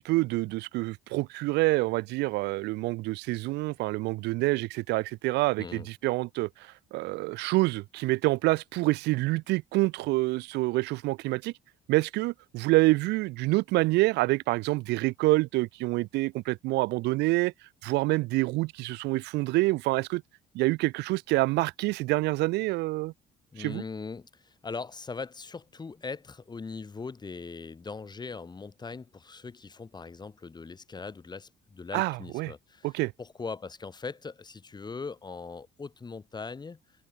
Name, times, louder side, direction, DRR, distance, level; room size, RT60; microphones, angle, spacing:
voice 1, 0.0-11.5 11.9-17.5 17.8-20.2 20.5-23.1 23.6-23.8 31.9-32.5 32.8-33.1, right 21 dB, 90° right, 1.0 m, -27 dB
voice 2, 23.5-32.9 33.2-36.8, left 4 dB, 25° left, 4.2 m, -40 dB
cardioid pair, 110°, 17 cm